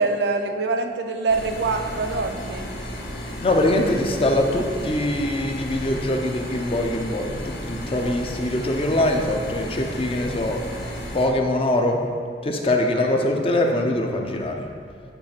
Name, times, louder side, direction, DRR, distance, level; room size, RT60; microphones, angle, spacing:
voice 1, 0.0-2.7, right 3 dB, 80° right, 6 dB, 0.5 m, -24 dB
sound 1, 1.3-11.3, equal, 70° left, 1.1 m, -34 dB
voice 2, 3.4-10.6 11.1-12.0 12.4-14.7, left 1 dB, 30° left, 2 dB, 0.6 m, -23 dB
8.9 x 3.3 x 5.8 m, 2.2 s
head